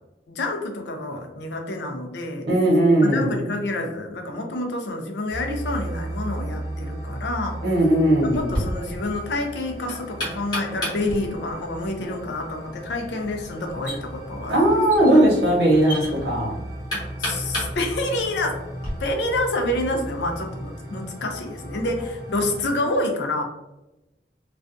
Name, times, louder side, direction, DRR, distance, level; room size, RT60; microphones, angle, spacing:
voice 1, 0.3-2.5 3.0-7.6 8.2-14.8 17.2-18.6 19.0-23.4, left 2 dB, 75° left, 2 dB, 0.5 m, -28 dB
voice 2, 2.5-3.3 7.6-8.4 14.5-16.5, right 1 dB, 70° right, -3 dB, 0.9 m, -18 dB
sound 1, 5.3-22.8, right 1 dB, 20° right, 0.4 m, -36 dB
Knock, 8.3-18.9, equal, 25° left, 1.0 m, -34 dB
2.4 x 2.2 x 2.5 m, 0.98 s
head